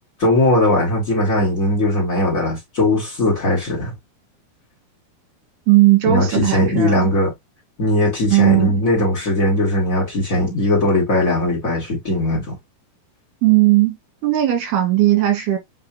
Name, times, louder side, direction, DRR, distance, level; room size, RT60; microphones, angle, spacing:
voice 1, 0.2-3.9 6.0-7.3 7.8-12.6, left 1 dB, 50° left, 1.0 m, -19 dB
voice 2, 5.7-7.1 8.3-8.7 13.4-14.0 14.2-15.6, right 15 dB, 90° right, 3.5 m, -16 dB
7.4 x 2.5 x 2.8 m
omnidirectional pair, 4.4 m